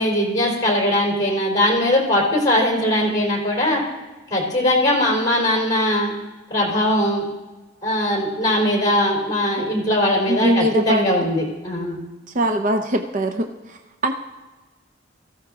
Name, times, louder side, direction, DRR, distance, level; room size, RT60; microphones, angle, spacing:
voice 1, 0.0-3.8 4.3-6.1 6.5-7.2 7.8-12.0, left 1 dB, 20° left, -1 dB, 3.3 m, -20 dB
voice 2, 10.3-11.3 12.3-14.1, right 1 dB, 40° right, 6 dB, 0.6 m, -22 dB
17.5 x 14.5 x 3.6 m, 1.2 s
head